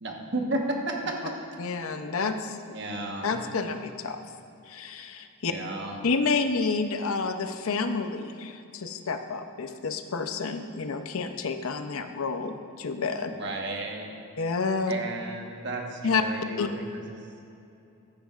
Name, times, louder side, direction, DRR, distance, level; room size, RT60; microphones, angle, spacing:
voice 1, 0.0-1.4 2.7-3.4 5.4-6.0 13.3-14.2 14.9-17.3, right 2 dB, 55° right, 1 dB, 1.2 m, -33 dB
voice 2, 1.6-2.6 3.2-4.2 4.7-5.5 6.0-13.3 14.4-14.9 16.0-16.2 16.6-16.7, left 4 dB, 75° left, 7 dB, 0.6 m, -29 dB
15.0 x 10.0 x 2.4 m, 2.7 s
head